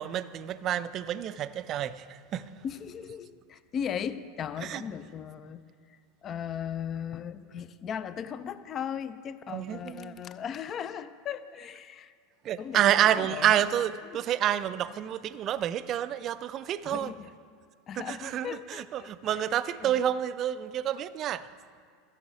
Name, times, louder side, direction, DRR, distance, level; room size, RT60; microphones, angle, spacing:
voice 1, 0.0-2.5 4.6-4.8 9.5-10.2 12.4-17.1 18.0-21.5, right 11 dB, 40° right, 0.4 m, -29 dB
voice 2, 2.6-5.6 5.9-12.1 12.6-13.6 14.0-14.2 16.8-17.3 17.9-19.4 19.8-19.9, left 8 dB, 35° left, 0.5 m, -37 dB
14.0 x 7.1 x 4.8 m
figure-of-eight pair, 80°, 0 cm